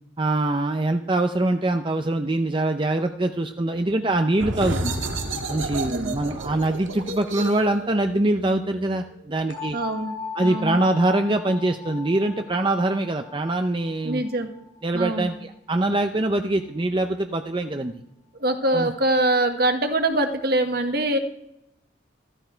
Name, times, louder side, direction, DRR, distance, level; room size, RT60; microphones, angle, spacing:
voice 1, 0.2-4.9 5.5-9.8 10.3-14.2 14.8-17.9 18.7-18.9, right 2 dB, 25° right, 6 dB, 0.6 m, -23 dB
sound 1, 4.3-9.7, right 2 dB, 80° right, 1.8 m, -31 dB
sound 2, 9.5-15.3, left 5 dB, 70° left, 4.8 m, -38 dB
voice 2, 9.7-10.1 10.4-10.8 14.0-14.5 14.9-15.3 18.4-21.2, right 1 dB, 50° right, 6 dB, 1.5 m, -23 dB
14.5 x 14.0 x 4.5 m, 0.83 s
head